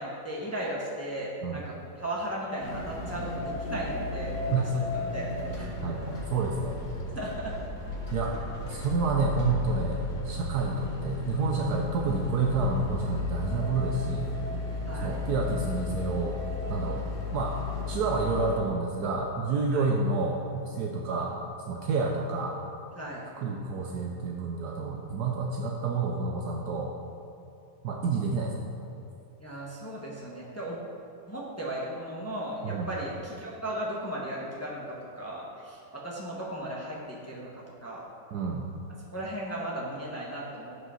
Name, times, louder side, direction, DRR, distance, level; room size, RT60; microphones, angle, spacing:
voice 1, 0.0-4.6 5.1-5.3 5.6-5.7 7.1-7.5 14.9-15.2 19.7-19.9 23.0-23.2 29.4-30.8 31.3-37.5 37.8-38.0 39.1-40.7, right 1 dB, 10° left, -5 dB, 0.9 m, -36 dB
sound 1, 2.6-18.6, left 3 dB, 70° left, 1.8 m, -35 dB
voice 2, 5.8-6.8 8.1-8.4 8.6-14.3 15.0-16.4 16.7-17.1 17.3-21.3 21.7-22.6 23.4-26.9 27.8-28.7 32.6-32.9 38.3-38.7, right 4 dB, 70° right, 1 dB, 1.2 m, -29 dB
7.9 x 5.3 x 5.7 m, 2.8 s
omnidirectional pair, 1.8 m